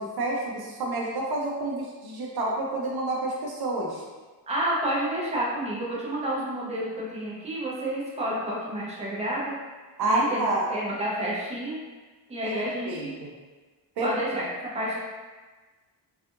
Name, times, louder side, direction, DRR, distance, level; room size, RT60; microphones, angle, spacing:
voice 1, 0.0-4.0 10.0-10.7 12.4-12.6 12.9-13.3 14.0-14.1, right 2 dB, 65° right, -2 dB, 0.5 m, -29 dB
voice 2, 4.5-9.6 10.0-11.8 12.3-13.1 14.0-14.5 14.7-14.9, right 1 dB, 15° right, -6 dB, 0.6 m, -30 dB
2.6 x 2.4 x 2.4 m, 1.3 s
wide cardioid pair, 145°, 41 cm